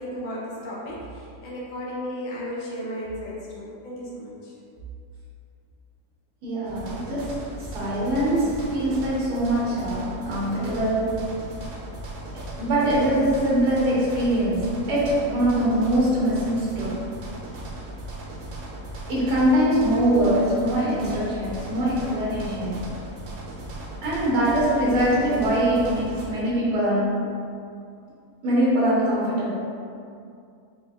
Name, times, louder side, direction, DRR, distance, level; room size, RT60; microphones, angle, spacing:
voice 1, 0.0-4.5, equal, 50° left, -6 dB, 0.5 m, -34 dB
voice 2, 6.4-11.3 12.3-17.0 19.1-22.9 24.0-27.2 28.4-29.5, right 1 dB, 85° right, -7 dB, 1.6 m, -23 dB
sound 1, 6.6-26.2, right 1 dB, 65° right, 0.9 m, -37 dB
4.4 x 2.9 x 2.3 m, 2.4 s
omnidirectional pair, 1.7 m